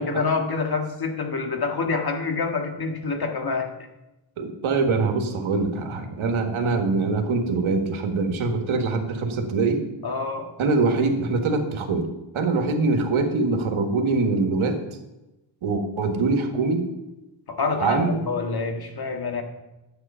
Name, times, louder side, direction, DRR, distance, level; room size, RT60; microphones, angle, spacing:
voice 1, 0.0-3.7 10.0-10.5 17.5-19.4, left 4 dB, 50° left, 4 dB, 1.7 m, -27 dB
voice 2, 4.4-9.8 10.6-12.1 12.3-14.8 15.6-16.8 17.8-18.2, right 3 dB, 75° right, 4 dB, 1.7 m, -23 dB
9.7 x 7.9 x 5.6 m, 0.99 s
cardioid pair, 85°, 49 cm